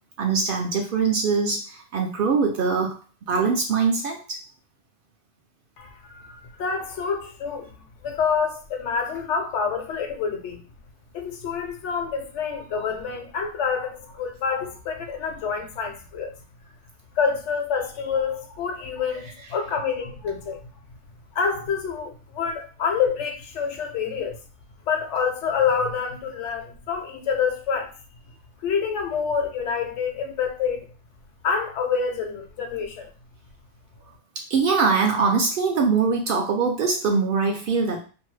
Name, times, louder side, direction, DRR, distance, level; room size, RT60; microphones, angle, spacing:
voice 1, 0.2-3.0 3.3-4.4 34.5-38.0, right 5 dB, 60° right, 0.6 m, -22 dB
voice 2, 5.8-7.7 8.0-10.6 11.1-16.4 17.2-20.6 21.3-24.4 24.9-27.9 28.6-30.9 31.4-33.1, left 6 dB, 80° left, 0.9 m, -27 dB
2.7 x 2.2 x 3.1 m
omnidirectional pair, 1.2 m